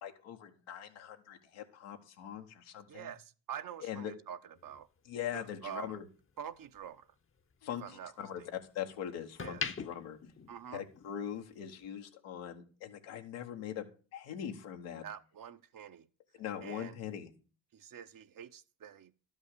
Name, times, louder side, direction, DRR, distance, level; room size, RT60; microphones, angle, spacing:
voice 1, 0.0-3.1 3.8-4.1 5.0-6.0 7.6-10.2 10.7-13.9 14.1-15.0 16.4-17.3, left 9 dB, 85° left, 1.4 m, -42 dB
voice 2, 2.9-4.9 5.3-6.0 6.4-7.1 7.8-8.5 9.4-9.6 10.5-10.8 15.0-16.1 16.6-17.0 17.7-19.1, right 8 dB, 45° right, 0.8 m, -46 dB
sound 1, 4.6-6.9 7.3-8.7 9.2-11.3 11.6-11.9, left 6 dB, 30° left, 0.8 m, -43 dB
12.0 x 5.5 x 6.7 m
supercardioid pair, 60°, 46 cm